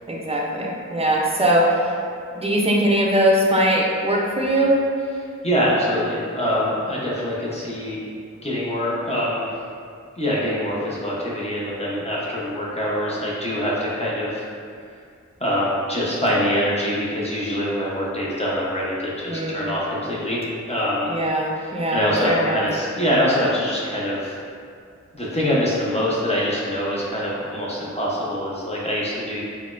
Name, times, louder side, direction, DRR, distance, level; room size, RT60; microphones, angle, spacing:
voice 1, 0.1-2.0 2.3-4.8 19.3-19.6 21.1-22.6, right 1 dB, 20° right, -2 dB, 0.5 m, -21 dB
voice 2, 5.4-8.0 8.4-9.6 10.2-14.4 15.4-20.4 20.7-21.1 21.9-24.4 25.1-29.4, equal, 20° left, -7 dB, 0.7 m, -24 dB
4.0 x 2.1 x 2.4 m, 2.3 s
wide cardioid pair, 55°, 30 cm